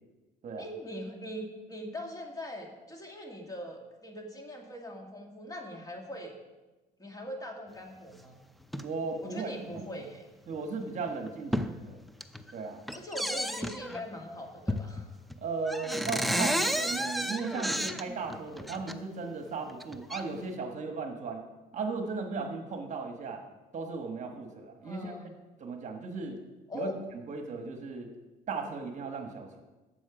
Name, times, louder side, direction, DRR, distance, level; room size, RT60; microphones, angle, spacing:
voice 1, 0.6-6.4 7.0-8.4 9.2-10.2 12.9-15.1 24.8-25.3 26.7-27.0, equal, 20° left, 2 dB, 1.9 m, -41 dB
sound 1, 8.6-8.9 9.7-9.9 10.5-10.6 11.1-11.7 12.1-12.5 12.9-14.0 14.7-15.0 15.3-15.4 15.7-18.9 19.7-20.2, equal, ahead, 0.5 m, -32 dB
voice 2, 8.8-9.9 10.5-12.0 12.5-12.8 15.4-21.4 21.7-23.4 23.7-25.2 25.6-26.4 26.7-28.1 28.5-29.6, right 4 dB, 45° right, 4 dB, 1.4 m, -36 dB
12.0 x 7.5 x 4.9 m, 1.2 s
cardioid pair, 110°, 17 cm